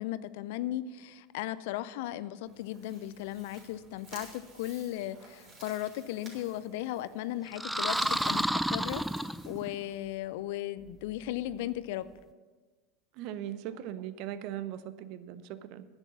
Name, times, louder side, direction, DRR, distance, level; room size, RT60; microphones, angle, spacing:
voice 1, 0.0-12.1, left 13 dB, 60° left, 16 dB, 0.4 m, -36 dB
sound 1, 2.4-10.1, right 2 dB, 40° right, 4.0 m, -53 dB
sound 2, 7.5-9.8, right 1 dB, 5° right, 0.3 m, -30 dB
voice 2, 13.2-15.9, right 11 dB, 55° right, 15 dB, 0.6 m, -39 dB
10.5 x 8.0 x 7.0 m, 1.4 s
figure-of-eight pair, 80°, 0 cm